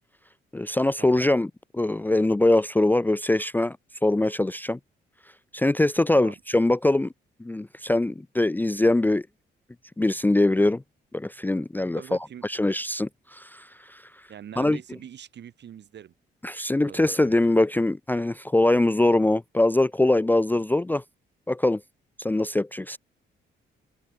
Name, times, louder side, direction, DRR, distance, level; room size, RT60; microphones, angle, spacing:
voice 1, 0.5-3.8 4.0-4.8 5.5-7.1 7.4-9.2 10.0-10.8 11.1-12.0 12.4-14.0 14.6-14.8 16.4-21.0 21.5-21.8 22.2-23.0, left 2 dB, 10° left, 0.5 m, -23 dB
voice 2, 12.0-12.5 14.3-16.1 16.9-17.5, right 9 dB, 60° right, 3.7 m, -44 dB
open air
cardioid pair, 90°, 20 cm